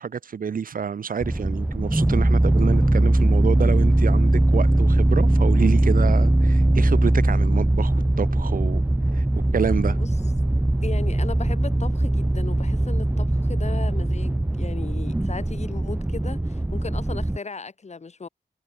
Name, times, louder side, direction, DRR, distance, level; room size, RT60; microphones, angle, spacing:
voice 1, 0.0-8.8 9.1-9.2 9.5-10.0, right 6 dB, 55° right, 1.0 m, -28 dB
sound 1, 1.2-17.4, right 1 dB, 10° right, 0.5 m, -20 dB
voice 2, 10.8-18.3, left 4 dB, 40° left, 6.4 m, -36 dB
wide cardioid pair, 155°, 17 cm